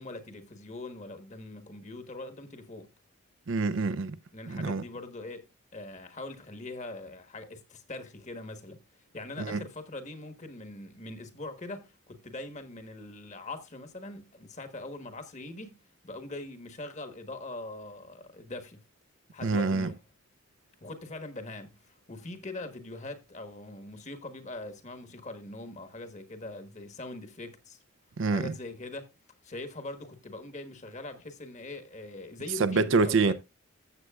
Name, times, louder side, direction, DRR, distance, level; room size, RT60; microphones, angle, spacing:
voice 1, 0.0-2.9 4.3-5.5 5.7-8.8 9.1-18.8 19.3-19.9 20.8-27.8 28.3-29.1 29.4-33.3, left 2 dB, 35° left, 1.3 m, -42 dB
voice 2, 3.5-4.2 4.5-4.8 9.4-9.6 19.4-19.9 28.2-28.5 32.6-33.3, right 4 dB, 55° right, 0.5 m, -26 dB
14.0 x 7.9 x 2.4 m
head